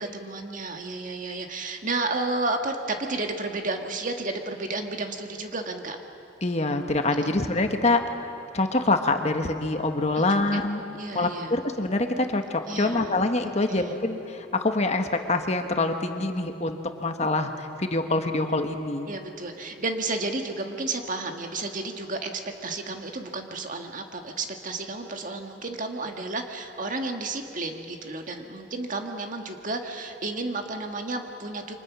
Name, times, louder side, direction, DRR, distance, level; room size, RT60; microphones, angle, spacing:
voice 1, 0.0-6.0 10.2-10.3 10.5-10.6 10.9-11.6 12.7-14.0 19.1-31.7, right 2 dB, 45° right, 4 dB, 1.8 m, -32 dB
voice 2, 6.4-8.0 8.5-19.1, left 2 dB, 35° left, 6 dB, 1.4 m, -25 dB
29.0 x 25.0 x 6.2 m, 2.7 s
head